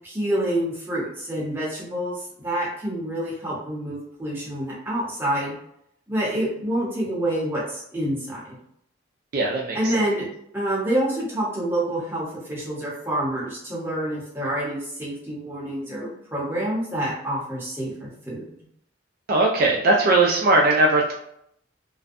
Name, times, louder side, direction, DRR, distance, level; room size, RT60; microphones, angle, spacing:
voice 1, 0.0-5.5 6.1-8.6 9.7-10.3 10.5-18.4, right 1 dB, 10° right, -6 dB, 0.7 m, -27 dB
voice 2, 9.3-9.8 19.3-21.1, right 2 dB, 45° right, -1 dB, 0.3 m, -19 dB
2.5 x 2.1 x 2.4 m, 0.73 s
head